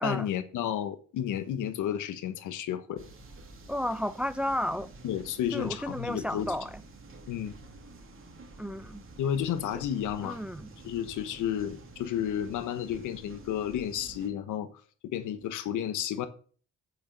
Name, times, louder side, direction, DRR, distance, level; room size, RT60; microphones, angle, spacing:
voice 1, 0.0-3.0 5.0-6.5 7.3-7.5 9.2-10.4 10.8-14.7 15.0-16.3, left 10 dB, 85° left, 1.2 m, -32 dB
sound 1, 3.0-14.3, right 3 dB, 45° right, 2.6 m, -49 dB
voice 2, 3.7-4.9 5.5-6.8 8.6-9.0 10.2-10.7, equal, 5° right, 0.5 m, -32 dB
8.9 x 6.7 x 5.2 m
cardioid pair, 90°, 30 cm